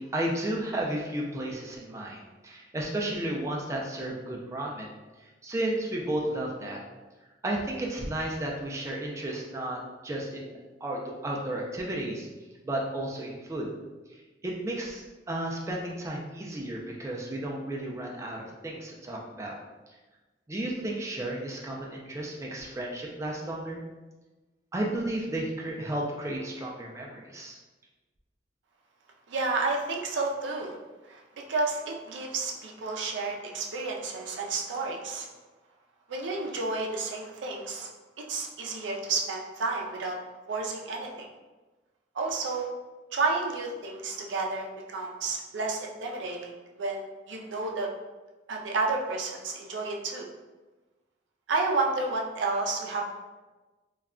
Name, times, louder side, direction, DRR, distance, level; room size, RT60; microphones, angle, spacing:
voice 1, 0.0-4.9 5.2-6.8 7.4-12.3 12.6-13.7 14.1-19.6 19.9-20.0 20.5-23.8 24.7-27.6, right 1 dB, 15° right, -2 dB, 0.3 m, -33 dB
voice 2, 29.3-30.8 31.1-31.2 31.5-35.3 36.1-37.9 38.2-40.2 40.5-41.3 42.1-42.7 43.1-47.9 48.5-50.3 51.5-53.0, right 3 dB, 85° right, 1 dB, 0.4 m, -31 dB
2.3 x 2.1 x 3.5 m, 1.2 s
head